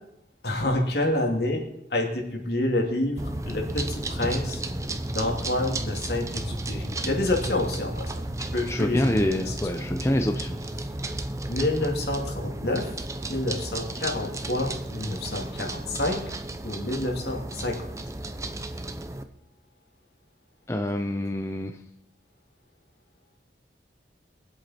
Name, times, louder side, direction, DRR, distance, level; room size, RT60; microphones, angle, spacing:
voice 1, 0.4-1.6 1.9-4.6 5.1-8.1 8.5-9.5 11.5-12.9 13.3-16.2 16.6-17.9, left 1 dB, 70° left, 1 dB, 2.6 m, -28 dB
sound 1, 3.2-19.2, right 1 dB, 20° right, 0.7 m, -33 dB
voice 2, 8.7-10.6 20.7-21.8, left 1 dB, 15° left, 4 dB, 0.7 m, -26 dB
22.5 x 8.2 x 4.4 m, 0.79 s
head